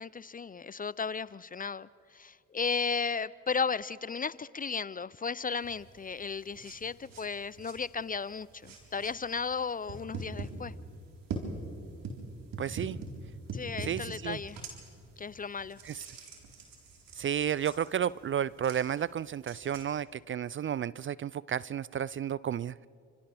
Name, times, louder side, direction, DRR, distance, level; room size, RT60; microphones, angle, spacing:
voice 1, 0.0-10.7 13.5-14.6 15.2-15.8, left 5 dB, 25° left, 20 dB, 0.4 m, -35 dB
sound 1, 5.6-19.8, right 3 dB, 65° right, 4.1 m, -44 dB
voice 2, 12.6-13.0 13.8-14.4 15.8-16.0 17.2-22.9, right 9 dB, 35° right, 21 dB, 0.4 m, -32 dB
29.5 x 26.5 x 3.4 m, 2.4 s
hypercardioid pair, 50°, 36 cm